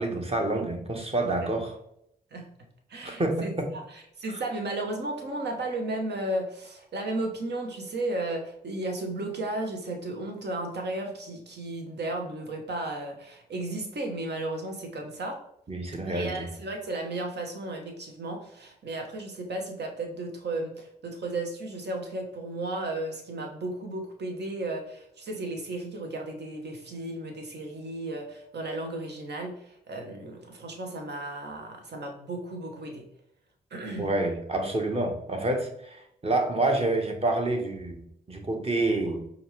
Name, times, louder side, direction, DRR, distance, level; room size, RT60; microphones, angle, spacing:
voice 1, 0.0-1.7 3.0-3.7 15.7-16.5 34.0-39.2, right 2 dB, 30° right, 3 dB, 1.2 m, -28 dB
voice 2, 2.9-3.5 3.9-15.4 16.0-33.0 33.7-34.1, right 2 dB, 55° right, 2 dB, 1.1 m, -34 dB
4.9 x 2.5 x 3.2 m, 0.74 s
hypercardioid pair, 40°, 20 cm